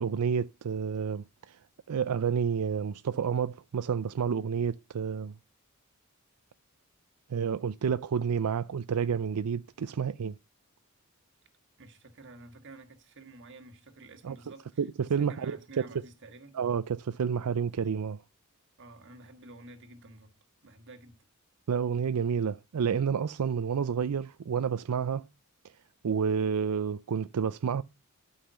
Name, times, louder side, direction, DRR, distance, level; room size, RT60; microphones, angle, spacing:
voice 1, 0.0-1.6 1.9-5.3 7.3-10.3 14.2-14.4 14.8-15.9 16.5-18.2 21.7-25.2 26.0-27.8, right 6 dB, 85° right, 0.4 m, -29 dB
voice 2, 11.8-16.6 18.8-20.3 20.6-21.2, right 2 dB, 55° right, 1.6 m, -50 dB
11.5 x 5.6 x 5.6 m
head